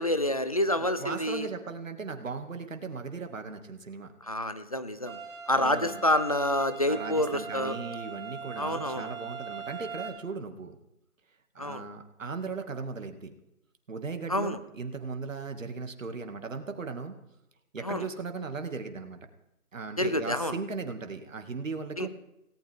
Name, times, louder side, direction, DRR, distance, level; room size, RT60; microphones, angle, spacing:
voice 1, 0.0-1.5 4.2-5.2 5.5-7.7 8.6-9.1 11.6-11.8 14.3-14.6 17.8-18.0 20.0-20.6 22.0-22.1, left 1 dB, 25° left, 11 dB, 0.6 m, -28 dB
voice 2, 0.8-4.1 5.6-6.0 6.8-10.8 11.5-13.3 13.9-17.2 17.7-19.2 19.7-22.1, right 4 dB, 60° right, 6 dB, 2.4 m, -37 dB
sound 1, 5.1-10.1, right 5 dB, 20° right, 2.5 m, -40 dB
18.0 x 18.0 x 3.7 m, 0.88 s
figure-of-eight pair, 160°, 44 cm